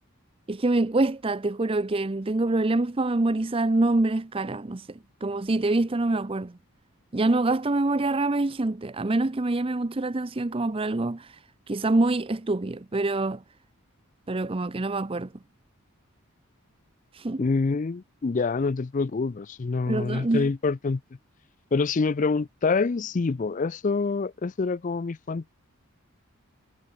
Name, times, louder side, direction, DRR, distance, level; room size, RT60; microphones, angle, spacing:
voice 1, 0.5-6.5 7.1-11.4 11.7-13.4 14.3-15.3 17.1-17.5 19.9-20.5, right 2 dB, 25° right, 0.6 m, -25 dB
voice 2, 17.4-21.0 21.7-25.5, left 4 dB, 35° left, 0.4 m, -26 dB
head